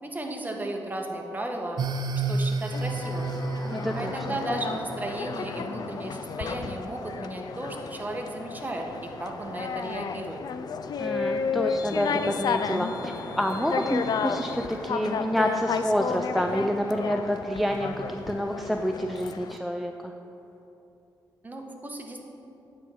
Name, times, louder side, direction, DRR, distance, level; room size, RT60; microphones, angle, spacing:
voice 1, 0.0-1.8 2.3-3.3 3.9-10.4 21.4-22.2, right 1 dB, 25° right, 2 dB, 1.1 m, -34 dB
sound 1, 1.8-6.3, right 3 dB, 65° right, 0.6 m, -32 dB
sound 2, 2.4-9.7 11.6-19.4, left 1 dB, 30° left, 1.7 m, -43 dB
sound 3, 2.7-19.6, left 6 dB, 60° left, 0.4 m, -33 dB
voice 2, 3.7-4.1 11.0-20.1, equal, ahead, 4 dB, 0.4 m, -28 dB
8.9 x 4.3 x 6.2 m, 2.8 s
cardioid pair, 75°, 8 cm